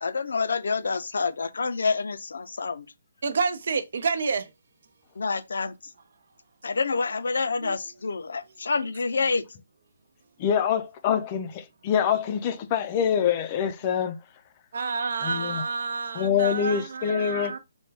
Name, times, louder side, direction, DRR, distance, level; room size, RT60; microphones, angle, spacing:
voice 1, 0.0-2.9 5.2-5.9 6.6-9.4, left 4 dB, 75° left, 0.6 m, -28 dB
voice 2, 3.2-4.5 7.6-7.8 14.7-17.6, right 5 dB, 60° right, 0.6 m, -29 dB
voice 3, 10.4-14.4 15.2-15.6 16.1-17.6, left 8 dB, 25° left, 0.5 m, -25 dB
4.3 x 2.3 x 3.3 m
hypercardioid pair, 160°, 0 cm